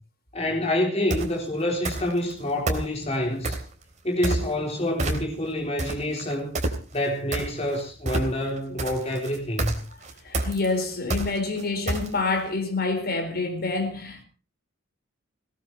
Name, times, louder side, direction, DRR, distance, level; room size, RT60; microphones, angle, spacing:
voice 1, 0.3-3.6 4.0-6.6 6.9-9.7, left 1 dB, 30° left, 3.9 m, -27 dB
sound 1, 1.1-1.4 1.9-2.3 2.7-3.7 4.2-4.7 5.0-5.5 5.8-12.4, right 2 dB, 35° right, 3.5 m, -28 dB
voice 2, 10.2-14.2, left 3 dB, 50° left, 4.2 m, -27 dB
20.0 x 19.0 x 3.0 m
head